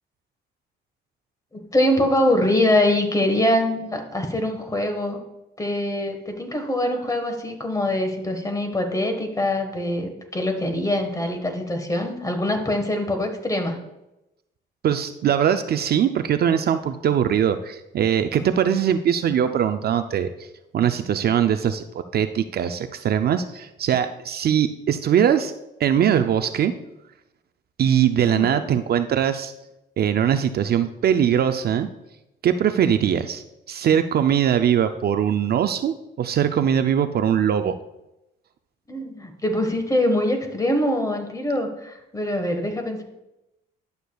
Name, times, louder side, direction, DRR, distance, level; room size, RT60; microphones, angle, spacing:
voice 1, 1.5-5.2 5.6-13.8 28.2-28.6 38.9-43.0, left 1 dB, 15° left, 4 dB, 1.4 m, -23 dB
voice 2, 14.8-20.5 20.7-25.5 25.8-26.7 27.8-29.5 30.0-31.9 32.4-37.8, right 9 dB, 55° right, 9 dB, 0.4 m, -21 dB
11.0 x 6.6 x 2.3 m, 0.92 s
cardioid pair, 90°, 20 cm